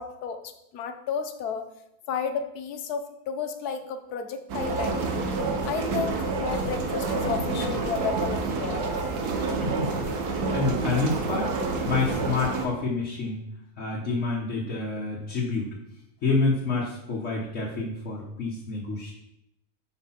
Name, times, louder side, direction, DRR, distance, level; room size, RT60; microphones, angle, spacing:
voice 1, 0.0-1.6 2.1-5.2 5.6-9.1 9.5-9.6, left 6 dB, 90° left, 8 dB, 1.3 m, -32 dB
sound 1, 4.5-12.7, right 3 dB, 85° right, 1.5 m, -28 dB
voice 2, 9.5-9.9 10.3-11.5 11.8-13.4 13.8-15.7 16.2-19.1, left 3 dB, 55° left, -4 dB, 1.6 m, -28 dB
6.4 x 4.9 x 5.7 m, 0.84 s
omnidirectional pair, 1.6 m